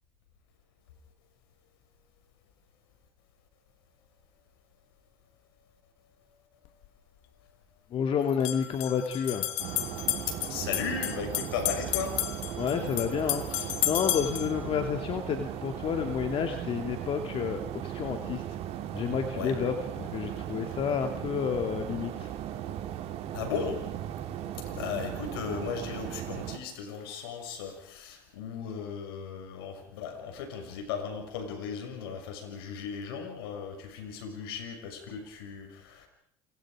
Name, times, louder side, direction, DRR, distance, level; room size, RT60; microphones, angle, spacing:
sound 1, 6.7-6.8 8.3-14.5, left 15 dB, 70° left, 1.9 m, -33 dB
voice 1, 7.9-9.4 12.5-18.4 18.9-22.3, left 7 dB, 50° left, 5 dB, 2.7 m, -30 dB
sound 2, 9.6-26.6, right 11 dB, 60° right, 3.1 m, -37 dB
voice 2, 10.3-12.2 19.3-19.5 23.3-23.8 24.6-36.1, left 6 dB, 85° left, 5 dB, 6.2 m, -36 dB
29.5 x 24.0 x 5.0 m, 0.66 s
supercardioid pair, 85°, 12 cm